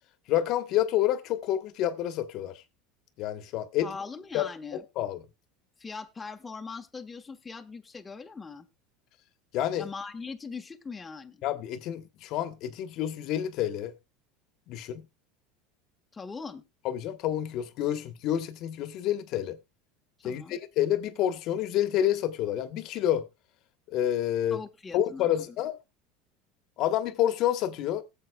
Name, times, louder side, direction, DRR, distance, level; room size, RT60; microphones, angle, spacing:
voice 1, 0.3-2.6 3.2-3.9 4.3-5.2 9.5-9.9 11.4-13.9 14.7-15.0 16.8-19.6 20.2-23.3 23.9-24.6 24.9-25.8 26.8-28.0, left 11 dB, 55° left, 1.2 m, -28 dB
voice 2, 3.8-4.8 5.8-8.7 9.8-11.4 16.1-16.6 20.2-20.6 24.5-25.6, left 4 dB, 15° left, 1.1 m, -41 dB
19.0 x 7.6 x 2.3 m
supercardioid pair, 120°, 0 cm